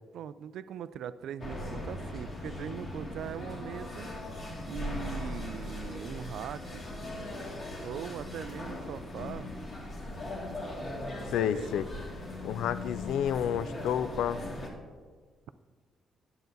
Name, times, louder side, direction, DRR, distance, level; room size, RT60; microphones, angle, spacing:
voice 1, 0.1-4.1 4.7-6.8 7.8-9.5 11.5-11.8, right 9 dB, 75° right, 15 dB, 0.3 m, -40 dB
sound 1, 1.4-14.7, left 1 dB, 45° left, 2.0 m, -39 dB
voice 2, 11.3-11.8 12.4-14.4, left 9 dB, 85° left, 14 dB, 0.4 m, -30 dB
9.2 x 8.0 x 4.0 m, 1.5 s
cardioid pair, 90°, 0 cm